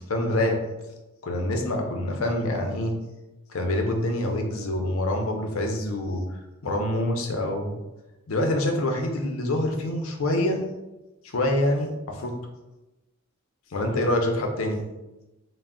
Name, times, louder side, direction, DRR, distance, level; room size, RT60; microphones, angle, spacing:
voice 1, 0.1-0.6 1.2-2.9 3.5-6.2 6.6-7.8 8.3-10.6 11.3-12.3 13.7-14.8, left 1 dB, 90° left, 3 dB, 0.5 m, -26 dB
2.2 x 2.0 x 3.5 m, 1.0 s
head